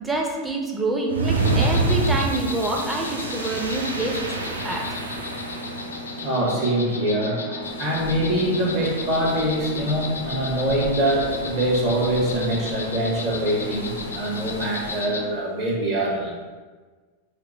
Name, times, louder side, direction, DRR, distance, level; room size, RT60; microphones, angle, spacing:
voice 1, 0.0-5.0, right 2 dB, 10° right, 1 dB, 0.6 m, -27 dB
sound 1, 1.1-6.0, right 3 dB, 70° right, 0.5 m, -26 dB
Insect, 1.4-15.3, left 3 dB, 75° left, 0.4 m, -34 dB
voice 2, 6.2-16.3, right 1 dB, 40° right, -4 dB, 1.4 m, -24 dB
sound 2, 7.6-15.0, right 1 dB, 90° right, 1.0 m, -39 dB
4.8 x 2.1 x 4.5 m, 1.4 s
figure-of-eight pair, 90°, 0 cm